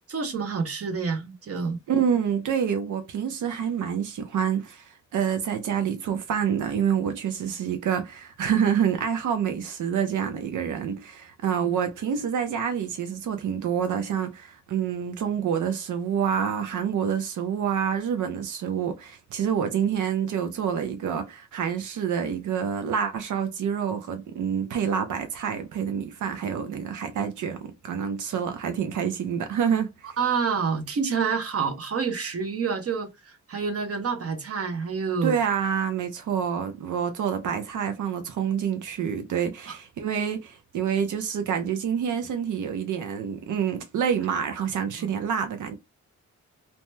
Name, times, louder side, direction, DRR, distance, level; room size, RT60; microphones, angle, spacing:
voice 1, 0.1-1.8 30.2-35.3 39.7-39.8 45.0-45.1, right 5 dB, 50° right, 0.8 m, -28 dB
voice 2, 1.9-29.9 35.2-45.7, right 8 dB, 85° right, 0.5 m, -27 dB
2.7 x 2.2 x 3.1 m
cardioid pair, 95°, 30 cm